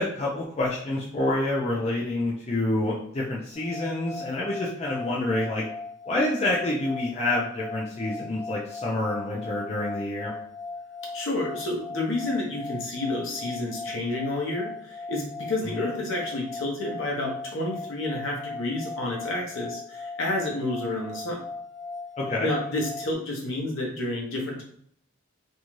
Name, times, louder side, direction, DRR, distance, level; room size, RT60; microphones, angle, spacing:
voice 1, 0.0-5.6 6.1-10.3 15.7-15.9 22.2-22.5, left 2 dB, 30° left, -4 dB, 0.4 m, -27 dB
sound 1, 3.5-23.1, left 3 dB, 85° right, 0.9 m, -38 dB
voice 2, 11.1-21.4 22.4-24.6, left 2 dB, 65° left, -1 dB, 0.8 m, -30 dB
2.6 x 2.3 x 3.0 m, 0.63 s
head